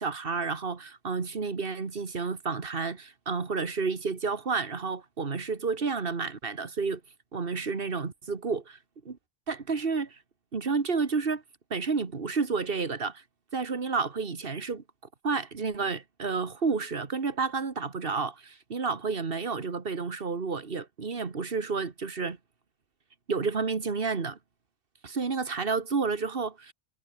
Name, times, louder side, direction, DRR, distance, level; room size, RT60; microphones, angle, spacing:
voice 1, 0.0-7.0 7.3-8.8 9.1-9.2 9.5-10.2 10.5-11.4 11.7-13.2 13.5-14.8 15.2-22.4 23.3-24.4 25.0-26.7, right 4 dB, 55° right, 1.9 m, -30 dB
omnidirectional pair, 1.2 m